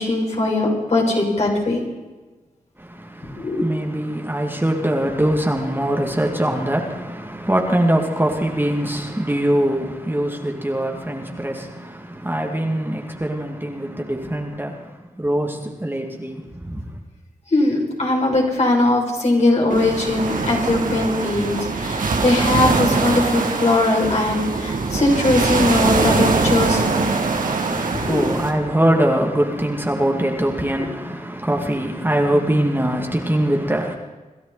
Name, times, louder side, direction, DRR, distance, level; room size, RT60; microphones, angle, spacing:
voice 1, 0.0-1.8 3.3-3.6 17.5-27.0 28.1-28.2, left 2 dB, 50° left, 6.3 m, -20 dB
voice 2, 2.8-17.0 27.6-34.0, right 1 dB, 15° right, 2.5 m, -22 dB
sound 1, 19.7-28.5, right 4 dB, 70° right, 2.4 m, -22 dB
27.0 x 12.5 x 4.3 m
cardioid pair, 50°, 14 cm